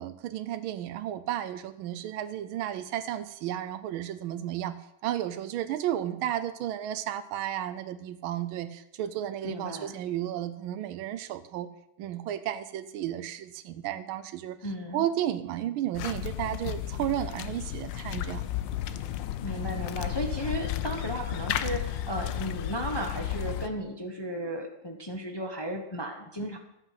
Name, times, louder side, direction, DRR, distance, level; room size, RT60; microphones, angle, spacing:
voice 1, 0.0-4.8 5.0-11.7 12.0-14.6 14.9-18.4, right 12 dB, 90° right, 12 dB, 1.5 m, -33 dB
voice 2, 9.4-9.9 14.6-15.0 19.4-26.6, equal, 30° left, 3 dB, 0.4 m, -35 dB
sound 1, 15.9-23.7, left 12 dB, 70° left, 1.3 m, -33 dB
11.5 x 8.1 x 5.7 m, 0.86 s
omnidirectional pair, 2.2 m